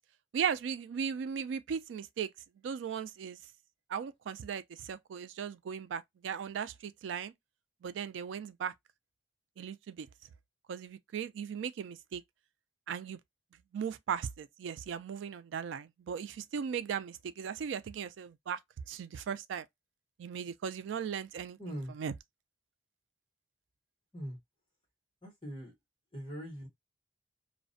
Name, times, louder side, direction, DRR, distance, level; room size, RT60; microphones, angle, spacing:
voice 1, 0.3-2.3 2.6-3.4 3.9-7.3 7.8-8.7 9.6-10.1 10.7-12.2 12.9-13.2 13.7-18.6 18.9-19.7 20.2-22.1, right 7 dB, 85° right, 0.3 m, -37 dB
voice 2, 21.6-21.9 24.1-24.4 25.2-25.7 26.1-26.7, equal, 25° left, 1.2 m, -41 dB
2.4 x 2.1 x 2.5 m
head